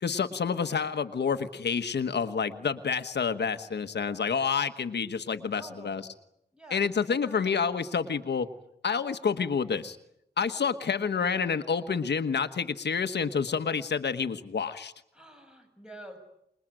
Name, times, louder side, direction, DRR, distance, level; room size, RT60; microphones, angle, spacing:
voice 1, 0.0-6.0 6.7-8.5 8.8-10.0 10.4-14.9, left 6 dB, 85° left, 9 dB, 1.3 m, -28 dB
voice 2, 5.6-6.1 6.5-6.8 7.2-7.5 10.4-10.7 15.1-16.2, right 1 dB, 5° right, 4 dB, 7.1 m, -48 dB
27.0 x 21.5 x 9.0 m, 0.79 s
wide cardioid pair, 85°, 17 cm